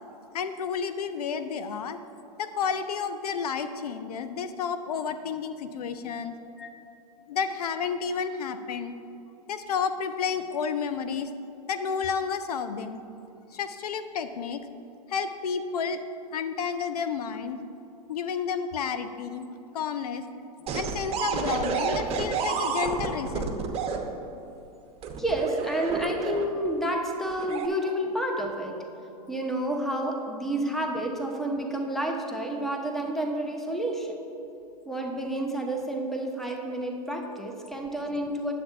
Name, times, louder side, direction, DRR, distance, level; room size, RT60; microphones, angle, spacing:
voice 1, 0.3-2.0 2.4-6.4 7.3-8.9 9.5-11.3 11.7-13.0 13.5-14.6 15.1-16.0 16.3-17.6 18.1-19.5 19.7-20.3 20.7-23.5, left 6 dB, 75° left, 10 dB, 0.5 m, -31 dB
sound 1, 20.7-24.0 25.0-26.7 27.3-27.7, right 5 dB, 30° right, 1.0 m, -29 dB
voice 2, 25.2-28.7 29.3-34.2 34.9-38.5, right 1 dB, ahead, 1 dB, 0.9 m, -30 dB
9.4 x 7.7 x 3.6 m, 2.7 s
hypercardioid pair, 105°, 20 cm